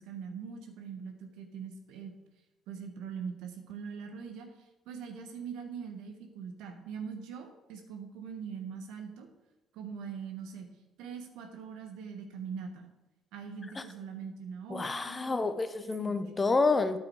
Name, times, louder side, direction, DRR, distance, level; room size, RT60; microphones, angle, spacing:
voice 1, 0.0-2.1 2.7-4.5 4.8-9.3 9.7-10.7 11.0-12.9 13.3-15.3 16.0-16.1, right 6 dB, 75° right, 6 dB, 1.3 m, -42 dB
voice 2, 14.7-17.0, left 3 dB, 25° left, 10 dB, 1.0 m, -29 dB
9.2 x 7.0 x 4.7 m, 0.97 s
hypercardioid pair, 55°, 0 cm